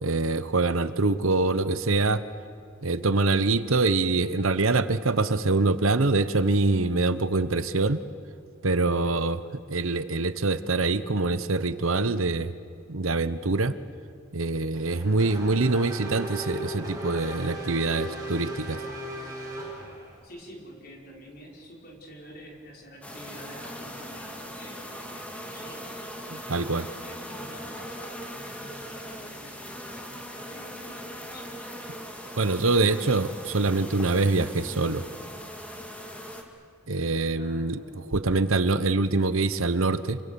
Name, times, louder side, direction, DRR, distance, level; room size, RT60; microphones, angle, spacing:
voice 1, 0.0-2.2 2.8-8.0 8.6-9.4 9.7-12.5 12.9-13.7 14.3-18.8 26.3-26.9 32.4-35.0 36.9-37.8 38.1-40.2, right 3 dB, 80° right, 13 dB, 1.0 m, -24 dB
Race car auto racing / Accelerating revving vroom, 14.7-20.2, right 1 dB, 15° right, 6.2 m, -37 dB
voice 2, 20.2-26.6 27.0-31.4 37.4-38.6, equal, 50° left, -1 dB, 5.0 m, -48 dB
sound 1, 23.0-36.4, equal, 5° left, 2.3 m, -40 dB
28.0 x 25.0 x 7.0 m, 2.3 s
head